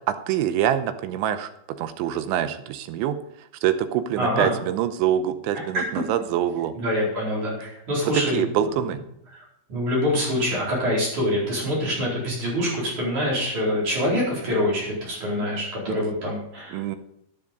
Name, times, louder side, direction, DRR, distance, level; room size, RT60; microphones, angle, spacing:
voice 1, 0.1-1.5 1.8-6.7 8.1-9.0 15.9-16.0 16.7-17.0, right 10 dB, 80° right, 10 dB, 3.0 m, -25 dB
voice 2, 4.2-4.5 6.8-8.5 9.7-17.0, left 1 dB, 40° right, -4 dB, 5.7 m, -25 dB
12.5 x 10.5 x 5.3 m, 0.75 s
omnidirectional pair, 5.5 m